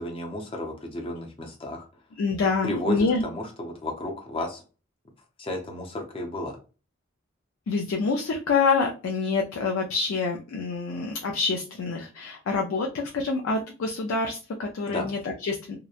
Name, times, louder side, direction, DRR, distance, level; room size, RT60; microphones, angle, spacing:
voice 1, 0.0-1.9 2.6-3.0 3.2-4.6 5.4-6.6 14.9-15.1, left 1 dB, 25° left, 2 dB, 0.5 m, -33 dB
voice 2, 2.2-3.2 7.7-15.8, left 4 dB, 90° left, 1 dB, 0.4 m, -26 dB
2.8 x 2.1 x 2.3 m, 0.34 s
head